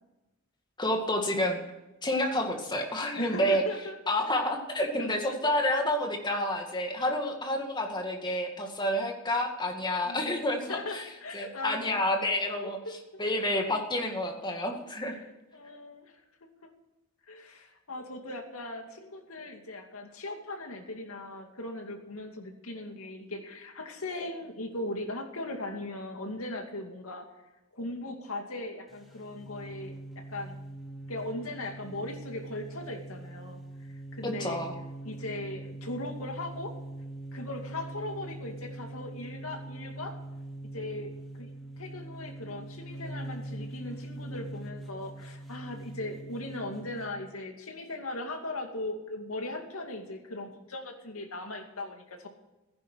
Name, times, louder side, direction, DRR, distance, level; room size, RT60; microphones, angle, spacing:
voice 1, 0.8-1.6 2.0-3.6 4.1-11.0 11.3-12.8 13.2-15.2 34.2-34.7, left 1 dB, 20° left, 3 dB, 2.2 m, -29 dB
voice 2, 3.2-4.0 5.0-5.4 10.0-11.9 12.6-12.9 15.1-16.1 16.6-16.7 17.3-27.3 27.7-30.6 31.1-34.6 35.0-36.8 37.3-40.2 40.7-41.1 41.4-41.5 41.8-52.3, left 2 dB, 90° left, 4 dB, 2.4 m, -39 dB
sound 1, 28.9-47.1, right 1 dB, ahead, 2.7 m, -42 dB
15.0 x 10.5 x 6.3 m, 1.0 s
head